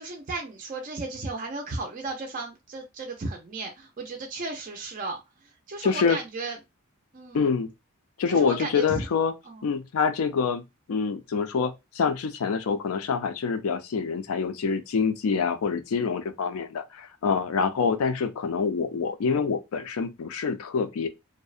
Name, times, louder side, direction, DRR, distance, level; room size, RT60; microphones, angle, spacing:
voice 1, 0.0-5.2 5.7-6.6 7.1-7.4 8.3-9.1 9.5-9.6, right 3 dB, 35° right, 0.4 m, -34 dB
voice 2, 5.8-6.2 7.3-7.7 8.2-9.3 9.6-10.6 10.9-21.1, left 5 dB, 75° left, 0.4 m, -26 dB
2.6 x 2.0 x 2.3 m
head